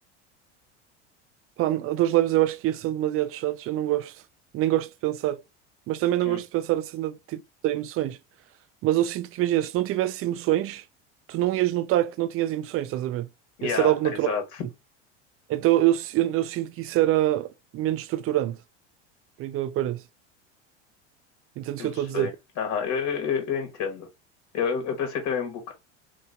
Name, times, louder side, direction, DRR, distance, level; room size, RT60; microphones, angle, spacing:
voice 1, 1.6-4.1 4.5-5.4 5.9-8.2 8.8-10.8 11.3-13.3 13.6-14.3 15.5-18.6 19.4-20.0 21.6-22.3, right 14 dB, 40° right, 0.5 m, -25 dB
voice 2, 13.6-14.6 21.8-22.3 22.6-24.1 24.5-25.7, left 6 dB, 50° left, 1.3 m, -29 dB
3.1 x 2.9 x 2.6 m
hypercardioid pair, 90°, 35 cm